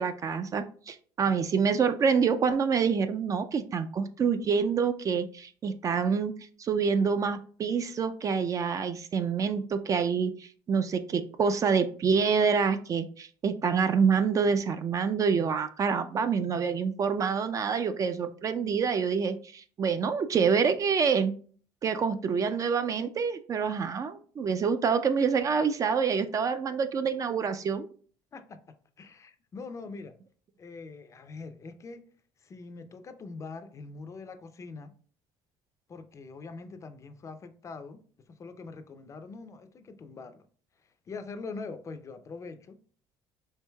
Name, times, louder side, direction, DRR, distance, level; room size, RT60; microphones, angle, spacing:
voice 1, 0.0-6.3 6.6-21.3 21.8-27.9, right 6 dB, 35° right, 0.3 m, -27 dB
voice 2, 29.0-30.1 30.6-32.0 32.4-34.9 35.9-38.0 38.3-40.4 41.1-42.8, left 4 dB, 30° left, 0.4 m, -43 dB
4.5 x 2.6 x 2.2 m
cardioid pair, 105°, 10 cm